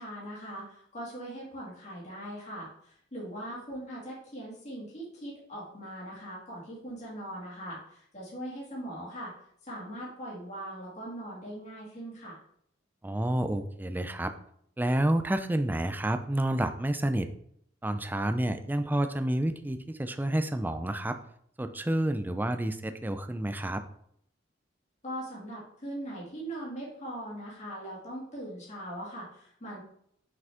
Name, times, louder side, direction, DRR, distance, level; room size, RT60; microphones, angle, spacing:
voice 1, 0.0-9.3 9.6-12.4 25.0-29.8, right 1 dB, 40° left, -5 dB, 2.2 m, -40 dB
voice 2, 13.0-14.3 14.8-17.3 17.8-21.2 21.6-23.8, right 1 dB, 10° right, 9 dB, 0.4 m, -29 dB
6.1 x 5.2 x 3.5 m, 0.68 s
head